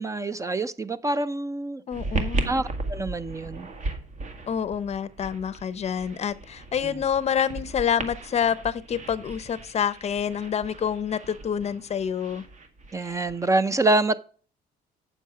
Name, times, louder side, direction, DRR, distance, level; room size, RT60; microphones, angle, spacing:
voice 1, 0.0-1.8 2.5-3.7 12.9-14.1, right 2 dB, 20° right, 0.5 m, -26 dB
voice 2, 1.9-2.5 4.5-12.4, left 8 dB, 40° left, 0.6 m, -27 dB
sound 1, 1.9-13.5, right 2 dB, 45° right, 1.6 m, -36 dB
8.4 x 7.0 x 4.7 m
cardioid pair, 110°, 17 cm